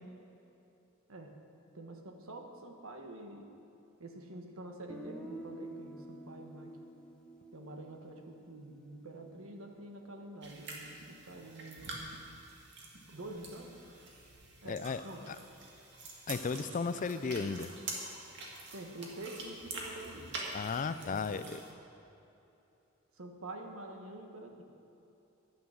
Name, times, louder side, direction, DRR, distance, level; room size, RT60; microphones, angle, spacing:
voice 1, 1.7-3.5 4.0-6.7 7.5-12.1 13.1-13.8 14.6-15.2 18.7-20.3 21.0-21.4 23.1-24.6, right 2 dB, 75° right, 3 dB, 1.3 m, -47 dB
Guitar, 4.9-8.8, right 1 dB, 5° left, 0.8 m, -48 dB
sound 1, 10.4-21.7, right 2 dB, 55° right, 1.9 m, -46 dB
voice 2, 14.7-15.0 15.3-15.4 16.3-17.7 20.5-21.6, left 5 dB, 40° left, 12 dB, 0.4 m, -35 dB
12.5 x 9.2 x 6.4 m, 2.9 s
head